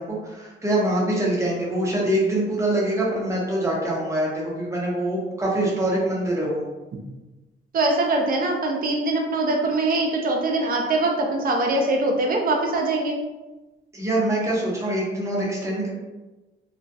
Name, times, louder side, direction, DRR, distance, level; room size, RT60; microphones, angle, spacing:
voice 1, 0.0-6.6 13.9-15.9, right 1 dB, 15° right, -4 dB, 0.7 m, -24 dB
voice 2, 7.7-13.2, right 2 dB, 50° right, 1 dB, 0.5 m, -22 dB
2.2 x 2.1 x 2.6 m, 1.1 s
cardioid pair, 120°, 19 cm